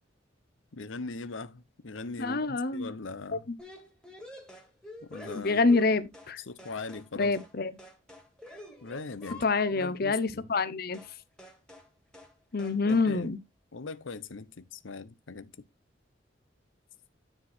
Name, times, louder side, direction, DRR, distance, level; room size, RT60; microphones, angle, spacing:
voice 1, 0.7-3.5 5.0-5.6 6.4-7.3 8.8-10.5 12.8-13.3 13.7-15.5, left 3 dB, 90° left, 0.8 m, -40 dB
voice 2, 2.2-2.9 5.3-6.4 7.2-7.7 9.4-11.0 12.5-13.4, left 3 dB, 55° left, 0.8 m, -26 dB
sound 1, 3.6-6.3 6.6-7.1 7.3-7.5 7.8-9.9 10.9-11.1 11.4-11.9 12.1-12.3 12.6-13.1, left 1 dB, 5° left, 2.2 m, -48 dB
10.0 x 4.4 x 4.3 m
head